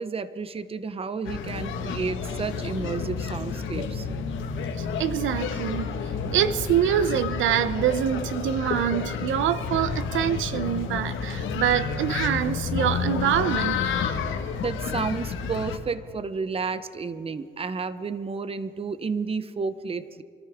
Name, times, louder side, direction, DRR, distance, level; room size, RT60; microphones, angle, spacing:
voice 1, 0.0-4.1 14.6-20.2, right 4 dB, 30° right, 13 dB, 0.8 m, -31 dB
sound 1, 1.2-15.8, left 5 dB, 80° left, 1.4 m, -30 dB
voice 2, 4.8-5.9 6.3-13.9, right 10 dB, 80° right, 14 dB, 0.7 m, -25 dB
25.5 x 13.5 x 3.5 m, 2.4 s
cardioid pair, 90°, 20 cm